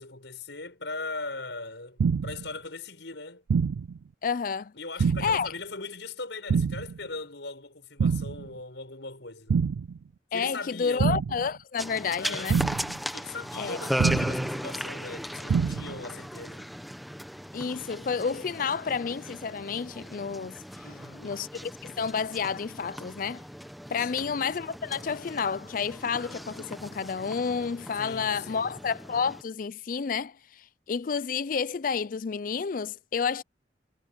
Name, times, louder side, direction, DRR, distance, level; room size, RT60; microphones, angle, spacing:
voice 1, 0.0-3.4 4.7-9.6 10.3-11.2 12.2-12.6 13.1-16.7 20.8-21.5 24.0-24.4 28.0-28.8, left 3 dB, 75° left, 6.1 m, -40 dB
sound 1, 2.0-2.5 3.5-4.0 5.0-5.5 6.5-7.0 8.0-8.5 9.5-10.0 11.0-11.5 12.5-13.0 14.0-14.5 15.5-16.0, right 6 dB, 85° right, 0.4 m, -26 dB
voice 2, 4.2-4.7 5.2-5.5 10.3-12.6 13.6-13.8 17.5-20.6 21.2-23.4 23.9-33.4, left 6 dB, 45° left, 0.4 m, -30 dB
sound 2, 11.8-29.4, equal, ahead, 1.0 m, -37 dB
head